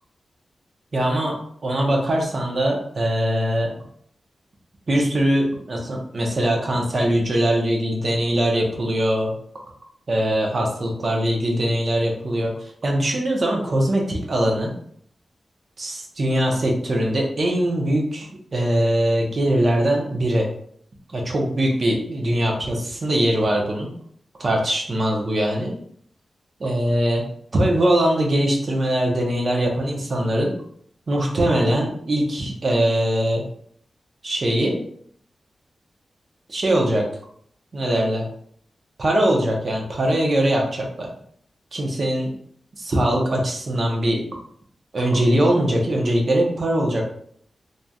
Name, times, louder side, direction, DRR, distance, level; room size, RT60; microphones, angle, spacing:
voice 1, 0.9-1.4 1.6-3.7 4.9-9.3 10.1-14.7 15.8-20.5 21.1-23.9 24.4-25.7 26.6-27.2 27.5-30.5 31.1-33.4 34.2-34.8 36.5-37.0 37.7-38.2 39.0-41.1 41.7-42.3 42.8-44.2 44.9-47.0, right 1 dB, 50° right, 0 dB, 0.8 m, -21 dB
3.0 x 2.6 x 2.3 m, 0.63 s
wide cardioid pair, 90°, 0 cm